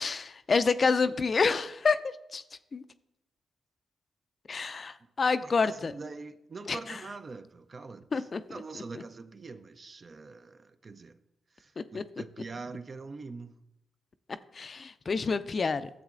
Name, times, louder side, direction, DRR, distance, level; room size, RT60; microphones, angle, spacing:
voice 1, 0.0-2.4 2.7-2.8 4.5-5.9 6.7-7.0 8.1-9.0 11.8-12.0 14.5-15.9, left 4 dB, 50° left, 0.4 m, -28 dB
voice 2, 5.4-11.2 11.5-13.6, right 4 dB, 45° right, 0.5 m, -44 dB
12.0 x 7.3 x 2.5 m
hypercardioid pair, 45°, 0 cm